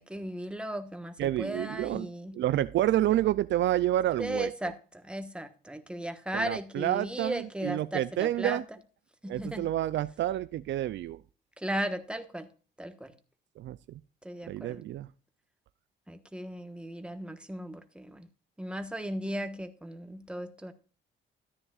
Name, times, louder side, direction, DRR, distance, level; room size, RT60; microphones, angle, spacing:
voice 1, 0.0-2.4 4.2-8.6 9.2-9.6 11.6-12.5 12.8-13.1 14.2-14.8 16.1-18.3 18.6-20.7, right 1 dB, 5° right, 7 dB, 1.2 m, -36 dB
voice 2, 1.2-4.5 6.3-8.6 9.3-11.2 13.6-14.0 14.5-15.1, right 13 dB, 65° right, 15 dB, 0.4 m, -29 dB
13.5 x 9.7 x 2.4 m, 0.36 s
cardioid pair, 90°, 20 cm